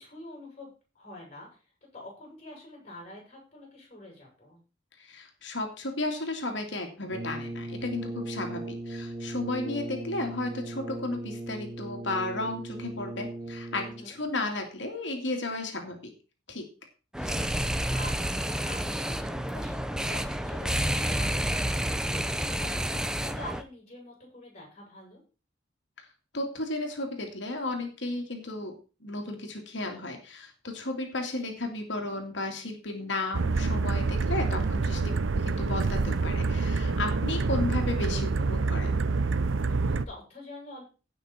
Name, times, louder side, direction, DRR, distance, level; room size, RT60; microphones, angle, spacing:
voice 1, 0.0-4.6 13.8-14.2 17.9-18.1 18.7-25.2 34.2-34.7 39.8-40.8, left 1 dB, 35° left, -2 dB, 7.7 m, -46 dB
voice 2, 5.0-8.6 8.9-16.1 16.5-16.6 17.2-17.4 26.3-28.7 29.0-35.0 35.3-39.0, left 2 dB, 70° left, 3 dB, 2.7 m, -34 dB
Brass instrument, 7.1-14.2, right 1 dB, 35° right, 1.4 m, -38 dB
sound 1, 17.1-23.6, right 1 dB, 5° right, 0.7 m, -29 dB
sound 2, 33.3-40.1, right 3 dB, 85° right, 0.7 m, -27 dB
17.0 x 6.1 x 4.4 m, 0.34 s
head